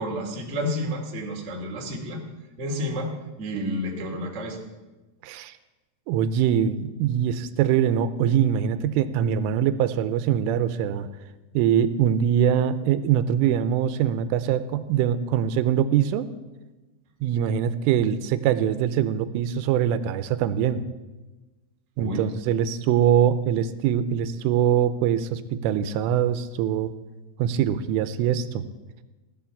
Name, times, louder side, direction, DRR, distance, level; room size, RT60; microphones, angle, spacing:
voice 1, 0.0-2.2 2.6-3.1 3.4-4.6 22.0-22.2, equal, 30° right, 0 dB, 1.4 m, -30 dB
voice 2, 5.2-5.5 6.1-11.1 11.5-16.3 17.2-20.9 22.0-26.9 27.4-28.7, right 9 dB, 85° right, 12 dB, 3.2 m, -23 dB
17.0 x 11.5 x 7.2 m, 1.1 s
omnidirectional pair, 5.7 m